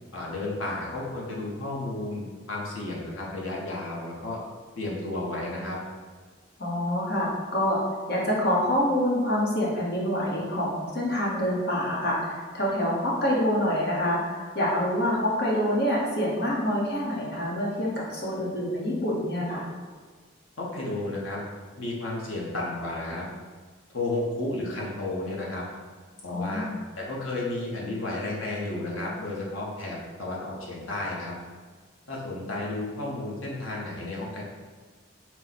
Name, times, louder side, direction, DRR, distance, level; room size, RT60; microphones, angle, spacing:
voice 1, 0.1-4.4 4.8-5.8 20.6-21.4 21.8-23.3 23.9-25.6 26.2-26.7 27.0-31.3 32.1-34.4, left 2 dB, 85° left, -3 dB, 1.0 m, -32 dB
voice 2, 6.6-7.8 8.1-19.7 26.3-26.8, equal, 50° left, -4 dB, 1.0 m, -26 dB
4.3 x 2.2 x 4.1 m, 1.5 s
head